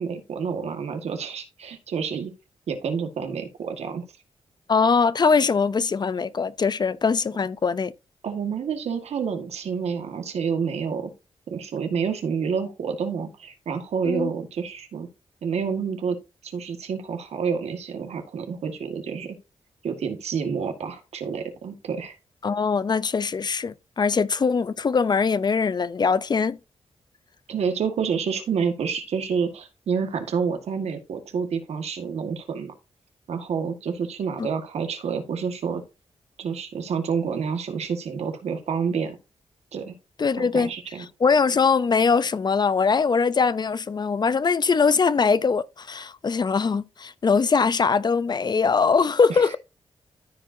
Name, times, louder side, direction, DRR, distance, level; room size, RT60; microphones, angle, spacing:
voice 1, 0.0-2.3 2.7-4.0 8.2-11.1 11.5-15.1 15.4-16.2 16.4-19.4 19.8-22.2 27.5-32.7 33.3-35.8 36.4-39.2 39.7-39.9 40.4-41.0 49.3-49.5, right 6 dB, 85° right, 1.7 m, -28 dB
voice 2, 4.7-7.9 14.0-14.3 22.4-26.6 34.4-34.5 40.2-40.7 41.2-49.6, left 5 dB, 40° left, 0.6 m, -22 dB
13.5 x 4.9 x 2.7 m
cardioid pair, 80°, 11 cm